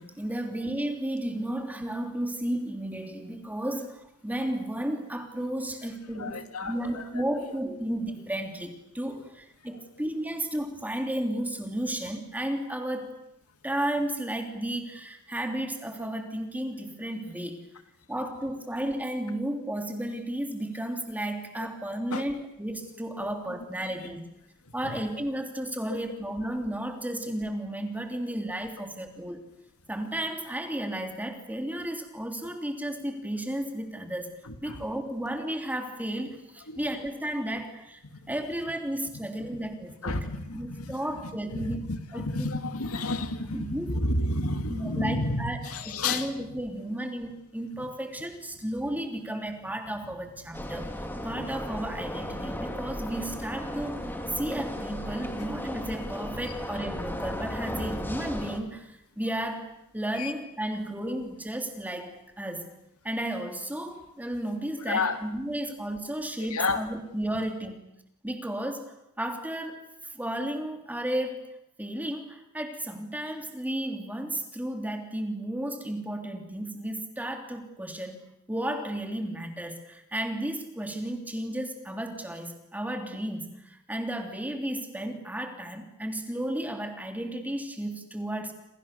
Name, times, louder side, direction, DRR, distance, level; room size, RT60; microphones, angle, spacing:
voice 1, 0.0-13.1 13.6-17.6 18.1-24.2 24.7-29.4 29.9-38.0 38.3-40.2 40.5-41.8 42.1-42.5 43.5-44.0 44.7-45.6 46.0-50.9 51.2-54.1 54.3-62.7 63.0-67.8 68.2-69.8 70.1-71.5 71.8-88.5, right 1 dB, 5° right, 4 dB, 3.3 m, -33 dB
voice 2, 6.1-7.4 22.1-22.2 23.1-23.3 24.7-25.0 25.9-26.0 34.4-34.8 36.7-36.8 38.1-38.3 39.5-39.7 40.0-46.6 60.1-60.3 64.8-65.2 66.5-66.8, left 2 dB, 80° left, 8 dB, 2.3 m, -31 dB
sound 1, 50.5-58.6, left 1 dB, 10° left, 2.8 m, -35 dB
28.5 x 27.0 x 7.0 m, 0.83 s
head